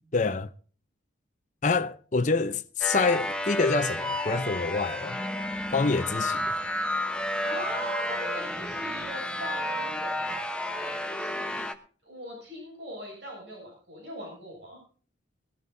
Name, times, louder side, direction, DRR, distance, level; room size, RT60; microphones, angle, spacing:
voice 1, 0.1-0.5 1.6-5.2 5.7-6.6, left 4 dB, 40° left, 0.6 m, -26 dB
sound 1, 2.8-11.7, left 1 dB, 5° left, 0.9 m, -31 dB
voice 2, 7.4-10.2 10.6-11.7 12.0-14.8, right 1 dB, 60° right, 7.5 m, -40 dB
21.0 x 13.5 x 2.7 m
head